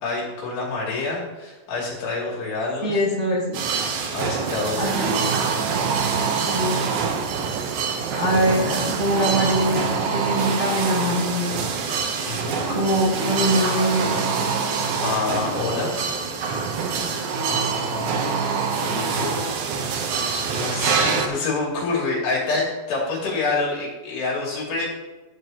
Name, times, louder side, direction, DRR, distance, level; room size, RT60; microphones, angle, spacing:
voice 1, 0.0-3.0 4.1-5.1 7.9-8.8 12.2-12.8 14.5-14.6 15.0-16.2 17.5-18.1 18.8-19.5 19.8-19.9 20.5-24.8, left 3 dB, 80° left, -4 dB, 5.0 m, -27 dB
voice 2, 2.8-3.6 4.8-5.1 6.4-6.9 8.2-11.6 12.7-14.3, equal, 40° right, -5 dB, 0.5 m, -23 dB
sound 1, 3.5-21.3, right 5 dB, 70° right, 1.9 m, -25 dB
sound 2, 4.4-10.0, right 8 dB, 90° right, 2.8 m, -32 dB
14.5 x 8.1 x 3.0 m, 1.2 s
omnidirectional pair, 4.8 m